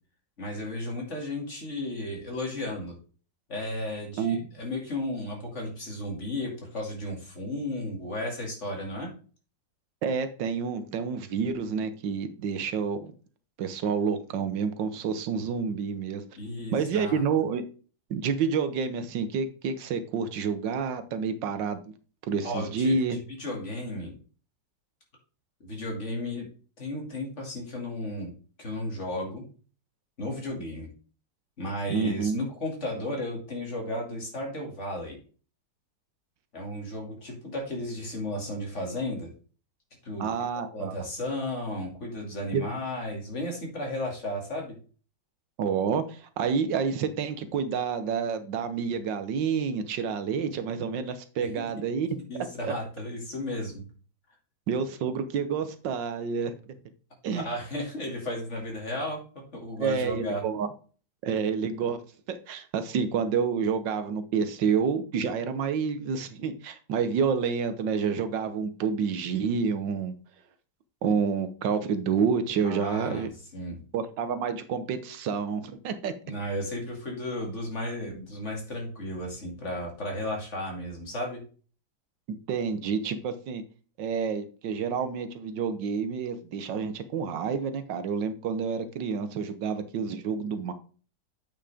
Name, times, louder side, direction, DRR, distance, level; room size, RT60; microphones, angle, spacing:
voice 1, 0.4-3.0 3.5-9.1 16.4-17.3 22.4-23.0 23.4-24.1 25.6-26.5 26.8-28.3 28.6-29.5 30.2-30.9 31.6-35.2 36.5-39.3 40.0-40.3 40.7-44.8 51.4-51.5 52.3-53.8 57.3-60.4 72.6-73.8 76.2-81.5, left 1 dB, 40° left, 2.8 m, -34 dB
voice 2, 10.0-13.1 13.6-16.2 16.7-17.6 18.1-21.8 22.3-23.2 31.9-32.5 40.2-40.9 42.5-42.6 45.6-52.1 52.6-52.7 54.7-56.5 57.2-57.5 59.8-60.7 61.2-62.0 62.3-70.1 71.0-73.3 73.9-76.1 82.3-83.6 84.0-90.7, right 6 dB, 90° right, 1.6 m, -29 dB
8.6 x 5.6 x 3.5 m
omnidirectional pair, 1.9 m